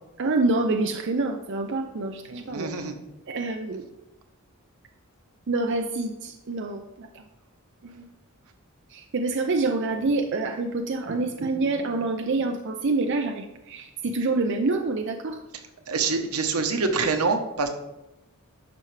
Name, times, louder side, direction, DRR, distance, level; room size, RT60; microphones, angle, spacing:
voice 1, 0.2-2.7 3.3-3.8 5.5-7.1 7.8-8.1 8.9-15.4, right 3 dB, 55° right, 4 dB, 0.5 m, -27 dB
voice 2, 2.3-3.0 15.9-17.7, right 4 dB, 85° right, 5 dB, 1.1 m, -26 dB
11.0 x 5.6 x 3.3 m, 0.94 s
head